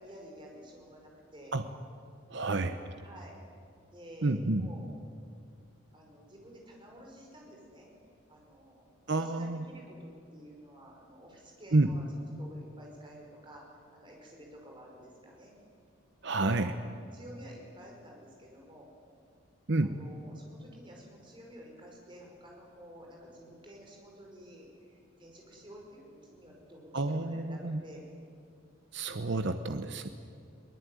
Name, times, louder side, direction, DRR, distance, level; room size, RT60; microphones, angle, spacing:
voice 1, 0.0-1.5 3.0-3.4 3.9-4.9 5.9-7.9 8.3-8.9 9.2-12.1 12.4-13.6 13.9-15.5 16.3-18.9 19.8-28.0, equal, 20° right, -1 dB, 5.3 m, -51 dB
voice 2, 2.3-2.8 4.2-4.7 9.1-9.6 11.7-11.9 16.2-16.7 19.7-20.0 26.9-27.8 28.9-30.1, right 2 dB, 55° right, 9 dB, 0.8 m, -29 dB
22.5 x 19.0 x 9.3 m, 2.3 s
head